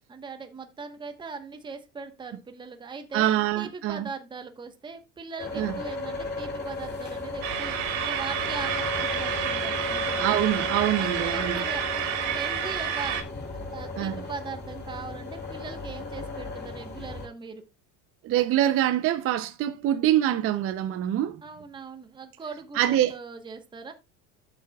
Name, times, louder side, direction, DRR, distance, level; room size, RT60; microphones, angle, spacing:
voice 1, 0.1-10.4 11.0-13.2 13.7-17.7 21.4-23.9, right 4 dB, 10° right, 1.1 m, -40 dB
voice 2, 3.1-4.1 5.5-5.7 10.2-11.6 14.0-14.1 18.2-21.4 22.7-23.2, right 12 dB, 35° right, 0.6 m, -25 dB
sound 1, 5.4-17.3, left 3 dB, 25° left, 3.1 m, -35 dB
sound 2, 7.4-13.2, right 9 dB, 70° right, 3.1 m, -30 dB
13.0 x 7.7 x 2.3 m
cardioid pair, 150°, 40 cm